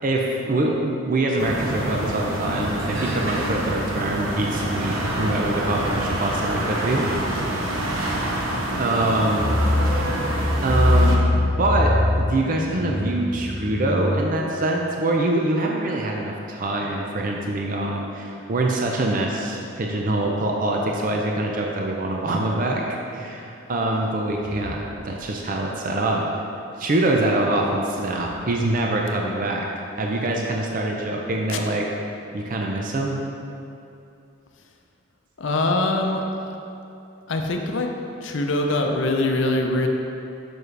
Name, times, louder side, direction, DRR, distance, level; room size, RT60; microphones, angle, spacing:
voice 1, 0.0-7.1 8.8-9.5 9.8-10.2 10.6-11.2 11.6-22.8 23.1-26.3 26.8-29.7 30.0-31.8 32.3-33.2, right 2 dB, 40° right, 0 dB, 0.5 m, -24 dB
sound 1, 1.4-11.2, right 1 dB, 80° right, 0.9 m, -27 dB
sound 2, 9.4-14.4, left 1 dB, 20° left, 0.5 m, -22 dB
voice 2, 35.4-36.6 37.3-37.9 38.2-39.9, left 2 dB, 65° left, 3 dB, 0.6 m, -23 dB
7.0 x 6.1 x 3.3 m, 2.7 s
head